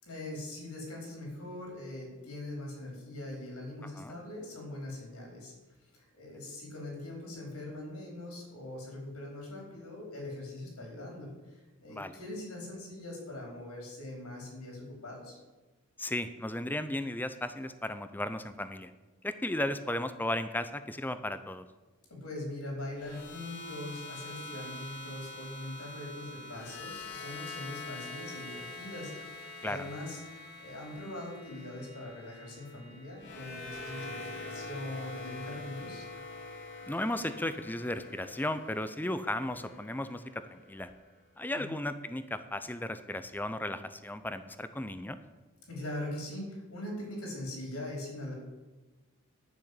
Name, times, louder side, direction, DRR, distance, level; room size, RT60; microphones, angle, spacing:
voice 1, 0.0-5.5 5.9-15.4 22.1-36.0 41.5-41.8 45.7-48.3, left 1 dB, 90° left, -1 dB, 4.7 m, -42 dB
voice 2, 16.0-18.9 19.2-21.6 29.6-29.9 36.9-40.9 41.4-45.2, left 1 dB, 10° left, 11 dB, 0.5 m, -35 dB
sound 1, 23.0-41.1, left 2 dB, 50° left, 2.0 m, -45 dB
10.5 x 6.4 x 8.8 m, 1.2 s
head